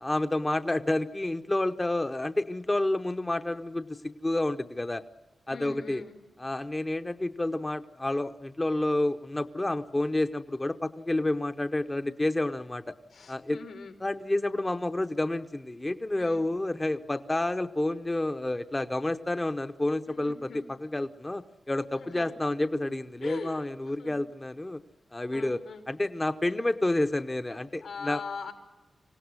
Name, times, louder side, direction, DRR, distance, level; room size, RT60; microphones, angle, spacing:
voice 1, 0.0-5.0 5.5-6.0 6.4-12.8 13.3-13.6 14.0-24.8 25.1-25.6 25.9-28.2, left 1 dB, 15° left, 7 dB, 0.7 m, -29 dB
voice 2, 5.5-6.2 13.1-14.0 16.2-16.5 20.1-20.7 22.0-22.3 23.2-24.2 25.3-25.8 27.8-28.5, left 5 dB, 85° left, 3 dB, 3.6 m, -42 dB
25.5 x 17.5 x 9.6 m, 1.2 s
wide cardioid pair, 145°, 0 cm